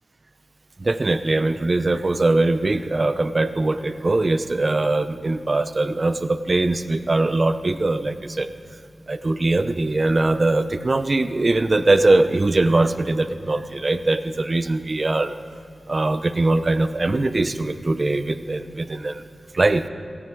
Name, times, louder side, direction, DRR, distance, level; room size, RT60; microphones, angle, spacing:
voice 1, 0.8-8.5 9.1-15.3 15.9-19.2 19.5-19.8, right 2 dB, 45° right, 11 dB, 0.8 m, -21 dB
17.5 x 15.0 x 4.7 m, 2.4 s
cardioid pair, 50°, 0 cm